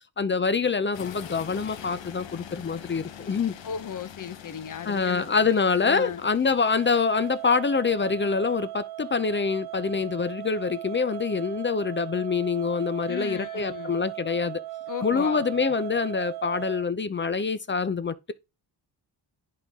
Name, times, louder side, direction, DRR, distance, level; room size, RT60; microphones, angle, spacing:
voice 1, 0.2-3.5 4.8-14.6 15.0-18.3, left 5 dB, 25° left, 0.5 m, -25 dB
sound 1, 0.9-7.5, left 9 dB, 80° left, 1.0 m, -44 dB
voice 2, 3.6-6.2 13.1-14.0 14.9-15.4, left 8 dB, 45° left, 0.9 m, -36 dB
sound 2, 6.6-16.8, right 15 dB, 55° right, 0.6 m, -38 dB
10.5 x 4.0 x 3.6 m
cardioid pair, 105°, 44 cm